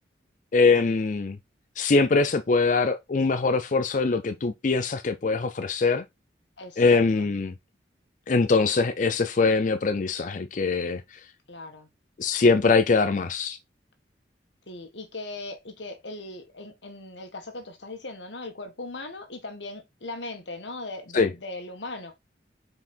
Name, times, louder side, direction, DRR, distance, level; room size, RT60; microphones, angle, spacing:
voice 1, 0.5-1.4 1.8-6.0 6.8-7.5 8.3-11.2 12.2-13.6 21.1-21.3, left 4 dB, 45° left, 0.5 m, -22 dB
voice 2, 6.6-7.3 11.5-11.9 14.7-22.2, left 2 dB, 85° left, 1.7 m, -39 dB
5.6 x 4.9 x 4.4 m
head